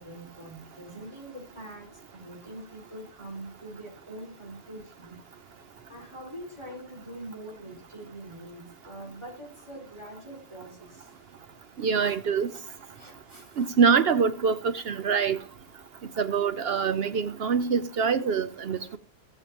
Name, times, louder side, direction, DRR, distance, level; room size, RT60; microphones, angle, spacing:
voice 1, 0.0-5.2 5.9-11.1 12.1-12.2 12.5-12.6 12.9-13.7, right 1 dB, 25° right, 4.9 m, -44 dB
voice 2, 11.8-12.5 13.6-15.4 16.2-19.0, right 6 dB, 60° right, 0.8 m, -25 dB
17.0 x 7.1 x 3.0 m
omnidirectional pair, 1.2 m